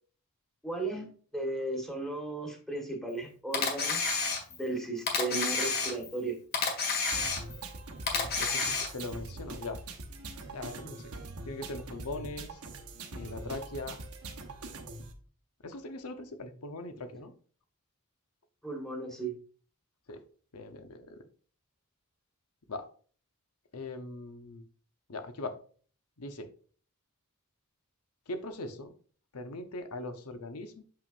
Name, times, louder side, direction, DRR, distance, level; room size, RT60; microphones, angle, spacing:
voice 1, 0.6-4.0 4.5-6.4 18.6-19.3, right 2 dB, ahead, 2 dB, 1.5 m, -35 dB
Camera, 3.5-4.7 5.1-6.2 6.5-7.7 8.1-9.1, left 4 dB, 45° left, 1.8 m, -30 dB
sound 1, 7.1-15.1, right 2 dB, 70° right, 1.1 m, -43 dB
voice 2, 8.4-9.8 10.5-11.1 11.5-12.6 13.1-14.0 15.6-17.3 20.1-20.2 20.5-21.2 22.7-22.9 23.7-24.6 25.1-25.6 26.2-26.5 28.3-28.9 29.3-30.8, left 2 dB, 80° left, 8 dB, 0.9 m, -40 dB
7.1 x 5.7 x 2.5 m, 0.43 s
head